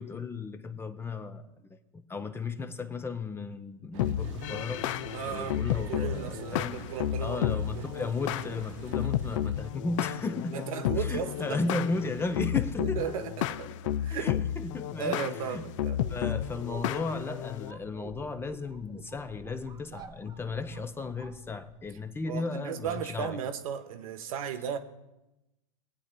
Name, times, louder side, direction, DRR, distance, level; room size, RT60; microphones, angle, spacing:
voice 1, 0.0-1.4 1.7-4.9 5.2-6.8 7.2-10.7 11.0-13.2 14.1-15.7 16.1-23.4, left 3 dB, 15° left, 0.6 m, -35 dB
sound 1, 3.9-9.7, right 14 dB, 55° right, 0.4 m, -46 dB
sound 2, 4.0-17.7, left 11 dB, 60° left, 0.5 m, -32 dB
voice 2, 5.1-7.9 10.5-11.6 12.8-14.3 15.0-16.0 22.2-24.8, right 8 dB, 70° right, 0.9 m, -36 dB
sound 3, 15.9-22.1, right 6 dB, 20° right, 0.8 m, -49 dB
22.5 x 8.5 x 2.2 m
hypercardioid pair, 110°, 19 cm